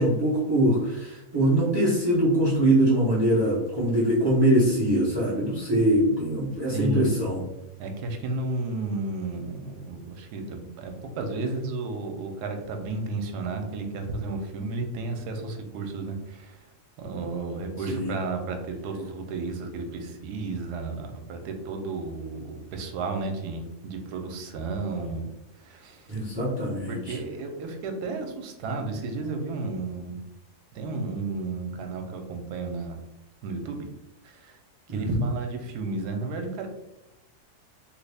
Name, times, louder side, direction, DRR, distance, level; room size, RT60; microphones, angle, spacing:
voice 1, 0.0-7.4 17.8-18.2 26.1-27.2 34.9-35.2, right 1 dB, 25° right, -6 dB, 0.5 m, -23 dB
voice 2, 6.7-7.1 7.8-16.6 17.0-25.3 25.6-26.1 26.9-30.2 30.7-33.0 33.4-33.9 34.2-34.6 34.9-36.7, right 3 dB, 85° right, 5 dB, 1.2 m, -32 dB
3.3 x 2.4 x 3.3 m, 0.92 s
omnidirectional pair, 1.7 m